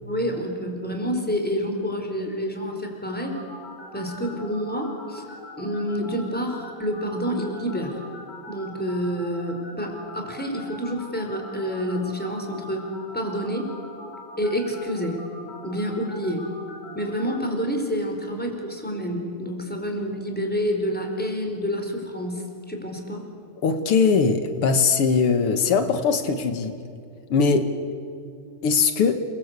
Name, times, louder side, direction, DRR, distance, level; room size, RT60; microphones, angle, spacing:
voice 1, 0.0-3.4 3.9-5.2 5.6-8.0 8.5-12.9 13.1-13.7 14.4-15.2 15.6-16.5 16.9-23.3, equal, 5° left, 2 dB, 4.3 m, -28 dB
sound 1, 3.2-17.4, left 1 dB, 50° left, 6.8 m, -42 dB
voice 2, 23.6-26.8 27.3-27.7 28.6-29.2, left 5 dB, 85° left, 8 dB, 2.5 m, -20 dB
28.5 x 22.0 x 8.2 m, 2.5 s
omnidirectional pair, 2.4 m